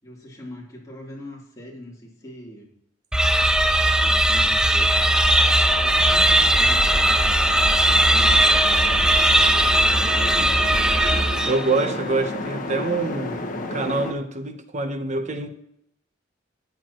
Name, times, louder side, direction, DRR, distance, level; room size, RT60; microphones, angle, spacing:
voice 1, 0.0-2.7 3.7-5.1 5.5-7.6 7.9-10.9, equal, 20° left, -4 dB, 3.2 m, -41 dB
sound 1, 3.1-11.8, right 1 dB, 5° right, 0.4 m, -18 dB
sound 2, 4.9-14.1, left 3 dB, 45° left, 1.3 m, -32 dB
voice 2, 11.5-15.5, right 3 dB, 40° right, 7 dB, 0.9 m, -26 dB
13.5 x 9.5 x 3.0 m, 0.73 s
head